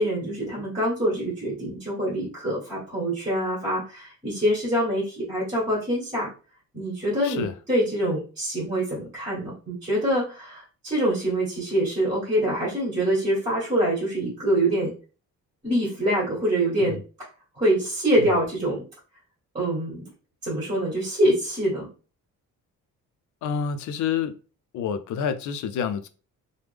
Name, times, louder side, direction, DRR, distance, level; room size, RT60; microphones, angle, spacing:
voice 1, 0.0-6.3 6.7-14.9 15.6-17.0 17.6-18.8 19.5-20.1 20.4-21.9, right 1 dB, 20° right, 1.5 m, -25 dB
voice 2, 7.2-7.5 16.8-16.9 18.2-18.3 23.4-24.4 24.7-26.1, left 7 dB, 60° left, 0.5 m, -28 dB
3.3 x 2.1 x 3.3 m
cardioid pair, 155°, 33 cm